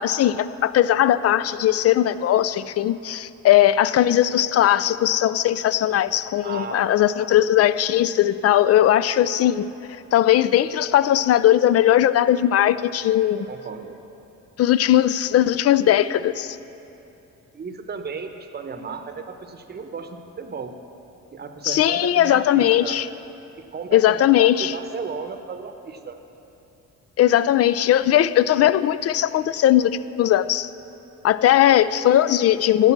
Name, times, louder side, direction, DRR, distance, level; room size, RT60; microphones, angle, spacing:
voice 1, 0.0-13.5 14.6-16.6 21.6-23.1 23.9-24.7 27.2-30.7 31.2-32.9, left 12 dB, 55° left, 15 dB, 0.4 m, -19 dB
voice 2, 6.4-6.9 13.4-14.0 17.5-20.7 21.3-23.0 23.7-26.2, right 5 dB, 35° right, 7 dB, 0.9 m, -34 dB
15.5 x 6.6 x 5.9 m, 2.9 s
cardioid pair, 90°, 30 cm